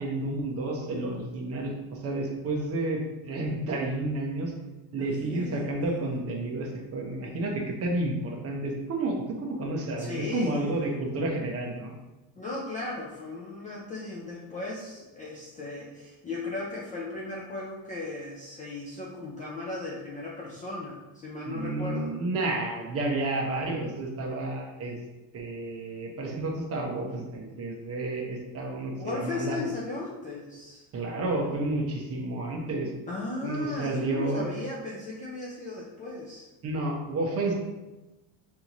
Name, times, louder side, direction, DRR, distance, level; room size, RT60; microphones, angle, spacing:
voice 1, 0.0-4.5 4.9-11.9 21.5-25.0 25.3-29.7 30.9-32.9 33.4-34.5 36.6-37.5, right 2 dB, 30° right, 0 dB, 0.8 m, -31 dB
voice 2, 5.0-5.9 10.0-10.8 12.3-22.1 29.0-30.8 33.1-36.5, left 2 dB, 20° left, -5 dB, 0.3 m, -36 dB
5.5 x 2.7 x 2.9 m, 1.1 s
cardioid pair, 140°, 46 cm